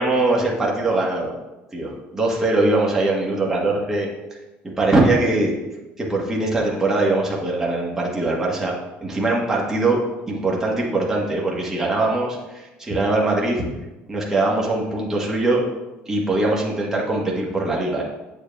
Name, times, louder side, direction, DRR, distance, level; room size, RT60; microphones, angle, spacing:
voice 1, 0.0-1.3 1.7-4.1 4.6-5.5 6.0-8.7 9.0-10.0 10.3-13.7 14.1-15.6 16.1-18.0, right 2 dB, 10° right, -3 dB, 1.1 m, -21 dB
8.0 x 7.0 x 2.2 m, 1.0 s
cardioid pair, 165°, 4 cm